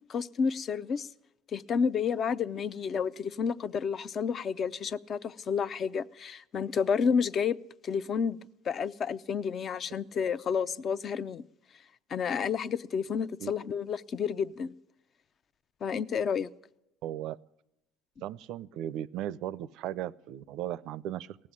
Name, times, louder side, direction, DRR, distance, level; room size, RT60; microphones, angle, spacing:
voice 1, 0.1-1.1 1.5-7.5 7.8-8.4 8.7-11.4 12.1-14.7 15.8-16.5, left 6 dB, 45° left, 15 dB, 0.6 m, -30 dB
voice 2, 17.0-17.4 18.2-21.4, right 12 dB, 70° right, 20 dB, 0.5 m, -36 dB
17.5 x 7.6 x 9.9 m, 0.87 s
supercardioid pair, 90°, 0 cm